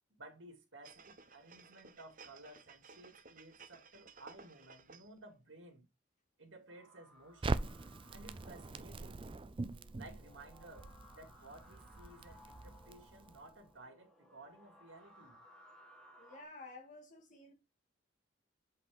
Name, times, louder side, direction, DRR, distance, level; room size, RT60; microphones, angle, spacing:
voice 1, 0.2-5.8 6.4-7.6 8.1-9.2 10.0-15.4, right 2 dB, 75° right, 2.3 m, -56 dB
sound 1, 0.8-5.2 5.6-5.7, right 4 dB, 45° right, 0.9 m, -57 dB
sound 2, 6.7-16.5, left 1 dB, 5° left, 1.4 m, -62 dB
Crackle, 7.4-13.6, right 3 dB, 25° right, 0.4 m, -42 dB
voice 2, 16.2-17.5, left 2 dB, 40° left, 2.0 m, -52 dB
8.1 x 4.7 x 3.5 m
head